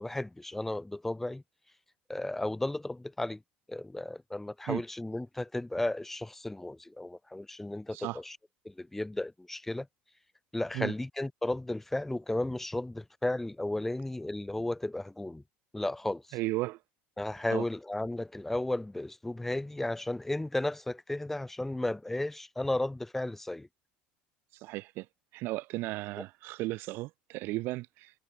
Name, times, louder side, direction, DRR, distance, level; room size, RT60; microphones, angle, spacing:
voice 1, 0.0-1.4 2.1-3.4 3.7-8.4 8.6-9.9 10.5-15.4 15.7-16.4 17.2-23.7 26.2-26.3, left 1 dB, 5° left, 2.4 m, -34 dB
voice 2, 16.3-16.8 17.5-17.6 24.6-25.1 25.3-28.1, right 20 dB, 65° right, 0.8 m, -35 dB
cardioid pair, 125°, 4 cm